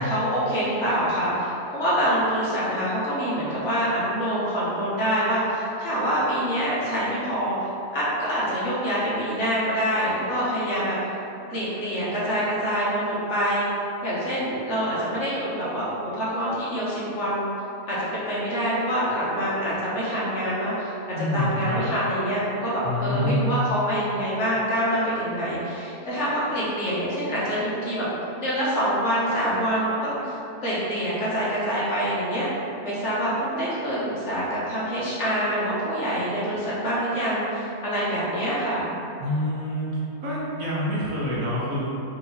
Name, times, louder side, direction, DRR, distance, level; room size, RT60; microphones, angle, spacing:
voice 1, 0.0-11.0 11.5-13.7 14.0-17.5 17.9-20.9 21.3-28.0 28.4-30.4 30.6-32.5 32.8-38.9, equal, 50° left, -9 dB, 1.2 m, -26 dB
voice 2, 21.2-21.8 22.8-23.5 39.2-39.9 40.2-41.9, left 1 dB, 60° right, -7 dB, 1.2 m, -26 dB
4.5 x 2.9 x 3.9 m, 2.9 s
omnidirectional pair, 1.7 m